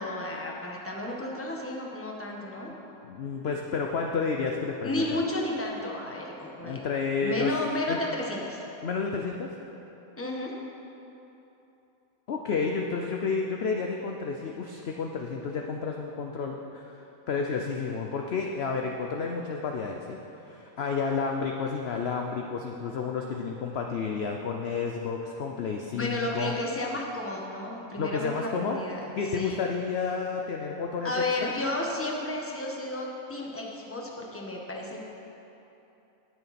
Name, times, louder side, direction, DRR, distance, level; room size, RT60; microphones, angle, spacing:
voice 1, 0.0-2.7 4.8-6.8 7.2-8.6 10.2-10.5 25.9-29.1 29.3-29.6 31.0-35.0, left 1 dB, 10° left, -1 dB, 1.1 m, -32 dB
voice 2, 3.0-5.2 6.6-7.5 7.9-8.0 8.8-9.5 12.3-20.2 20.4-26.5 28.0-28.8 29.1-31.5, left 5 dB, 55° left, 2 dB, 0.8 m, -31 dB
18.0 x 6.9 x 4.2 m, 3.0 s
omnidirectional pair, 1.6 m